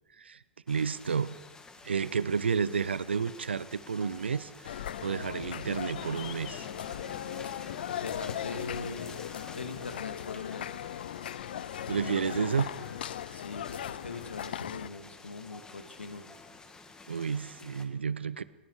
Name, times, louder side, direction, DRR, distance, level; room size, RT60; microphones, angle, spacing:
sound 1, 0.7-17.8, left 3 dB, 10° left, 2.6 m, -50 dB
voice 1, 0.7-1.3 1.8-6.7 11.9-12.7 17.1-18.4, right 6 dB, 80° right, 17 dB, 0.9 m, -31 dB
sound 2, 4.6-14.9, left 11 dB, 65° left, 0.6 m, -38 dB
voice 2, 8.0-9.1 9.5-10.8 13.3-16.2, left 4 dB, 85° left, 8 dB, 2.4 m, -41 dB
29.5 x 19.5 x 5.0 m, 1.1 s
hypercardioid pair, 110°, 6 cm